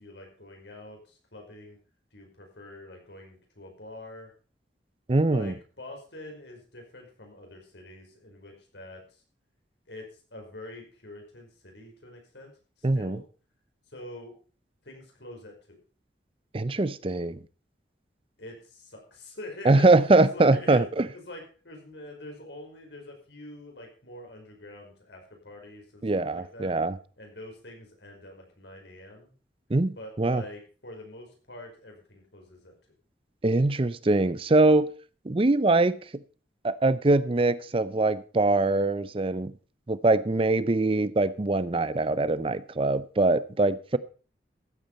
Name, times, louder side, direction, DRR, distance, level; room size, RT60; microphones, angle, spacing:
voice 1, 0.0-1.8 2.1-4.3 5.3-9.2 9.9-12.5 12.8-13.3 13.9-14.3 14.8-15.8 18.4-19.9 20.2-20.9 21.1-26.7 27.2-29.3 30.0-32.7, left 1 dB, 80° left, 5.2 m, -45 dB
voice 2, 5.1-5.5 12.8-13.2 16.5-17.4 19.7-20.8 26.0-27.0 29.7-30.4 33.4-34.9 35.3-36.0 36.6-39.5 39.9-44.0, right 2 dB, 30° right, 0.5 m, -23 dB
14.5 x 8.5 x 5.5 m
head